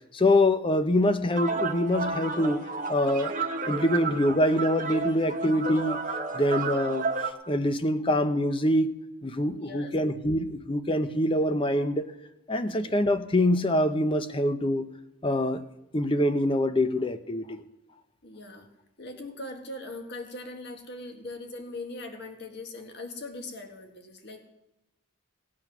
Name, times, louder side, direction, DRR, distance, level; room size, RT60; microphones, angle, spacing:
voice 1, 0.1-2.6 2.9-3.3 3.7-6.0 6.3-8.9 9.2-12.0 12.5-14.9 15.2-15.6 15.9-17.6, left 1 dB, 25° left, 10 dB, 0.6 m, -25 dB
sound 1, 1.3-7.3, right 4 dB, 40° right, 1.2 m, -32 dB
voice 2, 9.5-9.9 12.6-13.0 18.2-18.7 19.0-24.4, left 2 dB, 50° left, 4 dB, 1.7 m, -40 dB
18.0 x 8.6 x 6.0 m, 0.94 s
head